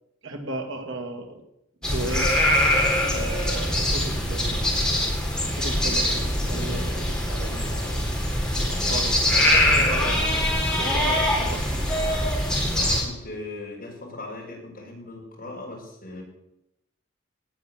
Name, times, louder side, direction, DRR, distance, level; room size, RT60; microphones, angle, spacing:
voice 1, 0.2-1.4 1.8-2.3 3.0-4.9 5.6-7.0 7.3-8.0 8.6-10.5 10.8-11.6, right 2 dB, 70° right, 3 dB, 2.6 m, -35 dB
sound 1, 1.8-13.0, left 1 dB, 5° left, 3.9 m, -23 dB
voice 2, 6.3-6.6 12.5-16.2, left 2 dB, 40° left, -2 dB, 5.9 m, -39 dB
18.0 x 9.6 x 7.2 m, 0.85 s
head